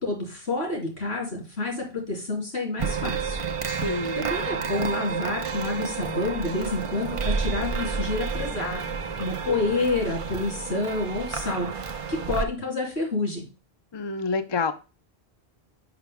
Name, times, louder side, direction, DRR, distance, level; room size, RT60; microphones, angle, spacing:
voice 1, 0.0-3.4 4.2-11.7 12.1-13.5, left 2 dB, 75° left, 0 dB, 3.3 m, -29 dB
sound 1, 2.8-12.4, right 5 dB, 40° right, 0.6 m, -30 dB
voice 2, 3.7-4.3 13.9-14.7, left 4 dB, 30° left, 9 dB, 0.5 m, -28 dB
5.8 x 5.8 x 3.5 m, 0.32 s
omnidirectional pair, 1.1 m